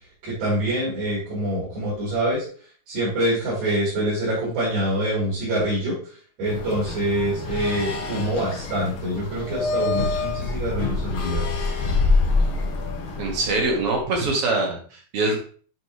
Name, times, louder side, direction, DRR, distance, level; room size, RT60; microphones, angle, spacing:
voice 1, 0.2-2.4 2.9-5.9 6.4-11.4, right 1 dB, 75° right, -10 dB, 5.3 m, -25 dB
sound 1, 6.4-14.0, left 3 dB, 90° left, 1.1 m, -26 dB
voice 2, 13.2-15.4, right 2 dB, 50° right, 0 dB, 1.9 m, -23 dB
9.2 x 4.4 x 3.2 m, 0.43 s
omnidirectional pair, 4.3 m